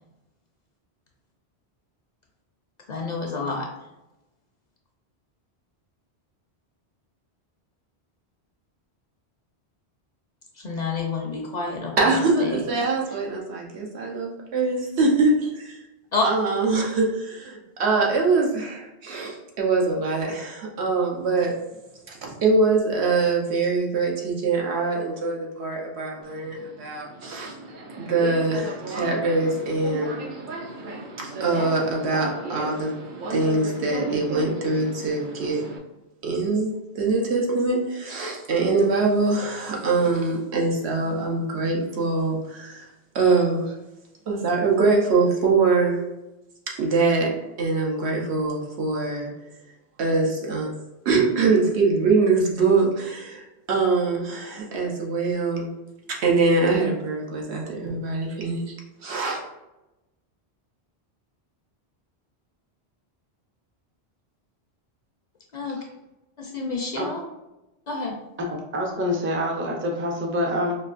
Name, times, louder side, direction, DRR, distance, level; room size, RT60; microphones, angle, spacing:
voice 1, 2.9-3.7 10.6-11.9 12.4-12.9 16.1-16.2 65.5-65.8 66.4-67.2 67.9-68.2, left 4 dB, 55° left, 0 dB, 0.5 m, -28 dB
voice 2, 12.0-15.8 16.2-21.6 22.1-27.5 28.0-30.2 31.2-32.9 33.2-35.6 36.2-42.9 43.1-43.7 44.3-46.0 46.8-49.3 50.0-50.7 51.0-55.7 56.1-58.7 59.0-59.4, right 3 dB, 80° right, -1 dB, 1.1 m, -23 dB
Subway metro underground, 26.2-35.8, right 1 dB, 60° right, 0.6 m, -36 dB
voice 3, 68.7-70.8, equal, 20° right, 0 dB, 0.3 m, -26 dB
4.5 x 2.4 x 2.4 m, 0.97 s
omnidirectional pair, 1.1 m